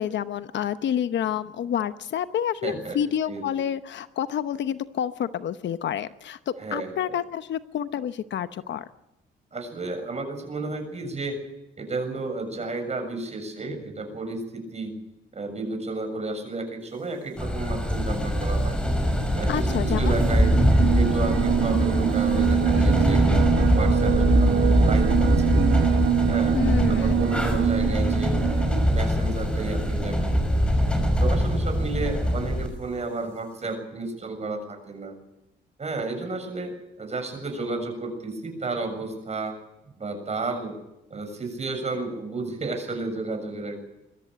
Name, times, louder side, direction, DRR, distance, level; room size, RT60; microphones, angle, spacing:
voice 1, 0.0-8.8 19.5-20.1 26.5-27.1, left 9 dB, 65° left, 12 dB, 1.0 m, -29 dB
voice 2, 2.6-3.0 3.3-3.6 6.6-7.2 9.5-11.4 11.8-14.9 15.3-18.8 19.4-20.5 20.8-23.3 23.5-25.8 26.3-26.6 26.9-30.4 31.2-35.2 35.8-39.6 40.0-40.8 41.1-43.8, right 3 dB, 35° right, 6 dB, 7.0 m, -32 dB
sound 1, 17.4-32.7, equal, 5° left, 5.9 m, -22 dB
sound 2, 19.7-28.9, right 11 dB, 85° right, 1.2 m, -25 dB
22.5 x 13.5 x 10.0 m, 0.91 s
cardioid pair, 90°, 20 cm